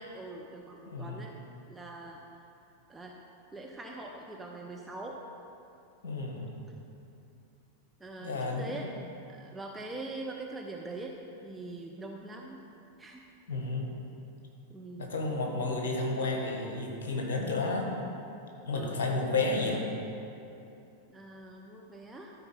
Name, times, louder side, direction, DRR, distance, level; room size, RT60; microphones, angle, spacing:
voice 1, 0.0-1.3 1.7-2.2 2.9-3.2 3.5-5.2 8.0-8.9 9.2-11.2 11.4-12.6 13.0-13.2 14.7-15.1 18.7-19.0 21.1-22.3, right 2 dB, 10° right, -1 dB, 0.7 m, -43 dB
voice 2, 0.8-1.2 6.0-6.5 8.2-8.9 13.5-13.9 15.0-17.9 18.7-19.8, left 3 dB, 60° left, 1 dB, 1.5 m, -31 dB
12.5 x 4.7 x 5.5 m, 2.8 s
figure-of-eight pair, 90°, 0 cm